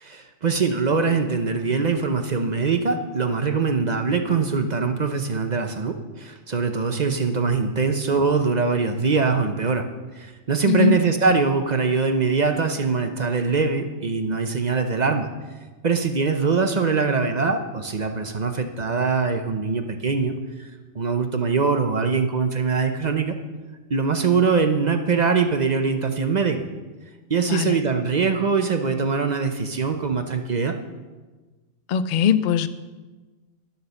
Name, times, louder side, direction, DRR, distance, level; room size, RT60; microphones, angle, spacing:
voice 1, 0.0-9.8 10.2-15.3 15.8-20.7 20.9-23.3 23.9-26.6 27.3-30.7, right 5 dB, 40° right, 6 dB, 0.7 m, -22 dB
voice 2, 10.7-11.0 27.5-27.8 31.9-32.7, left 8 dB, 60° left, 13 dB, 0.5 m, -20 dB
11.5 x 6.7 x 6.9 m, 1.3 s
omnidirectional pair, 1.3 m